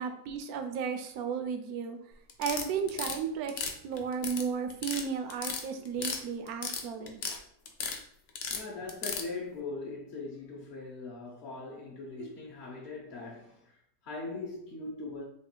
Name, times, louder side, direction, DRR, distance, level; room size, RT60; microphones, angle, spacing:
voice 1, 0.0-2.0 2.4-7.2 12.2-12.3, right 6 dB, 75° right, 1.0 m, -34 dB
sound 1, 2.3-3.2 3.5-4.4 4.7-5.0 5.3-6.2 6.5-7.4 7.7-8.0 8.4-9.2, left 6 dB, 90° left, 0.5 m, -34 dB
voice 2, 8.5-15.2, left 3 dB, 50° left, 0.9 m, -41 dB
3.2 x 2.4 x 4.4 m
omnidirectional pair, 1.7 m